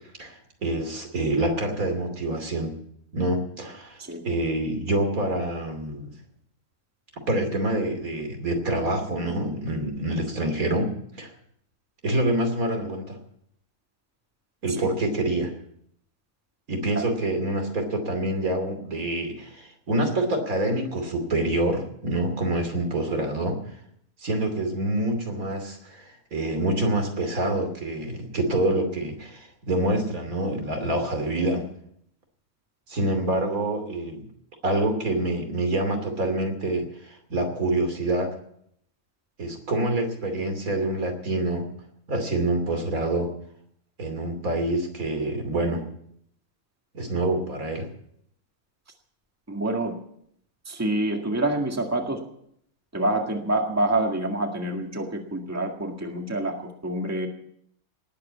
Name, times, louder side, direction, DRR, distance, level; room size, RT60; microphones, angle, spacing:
voice 1, 0.2-2.8 3.1-6.1 7.3-11.3 12.0-13.2 14.6-15.5 16.7-23.6 24.2-31.6 32.9-34.3 34.6-38.3 39.4-41.7 42.1-43.3 44.0-45.8 46.9-47.9, right 1 dB, 75° right, 5 dB, 3.2 m, -26 dB
voice 2, 49.5-49.9 50.7-52.2 52.9-57.3, right 1 dB, 10° right, 2 dB, 1.9 m, -27 dB
19.5 x 8.4 x 8.5 m, 0.71 s
omnidirectional pair, 1.5 m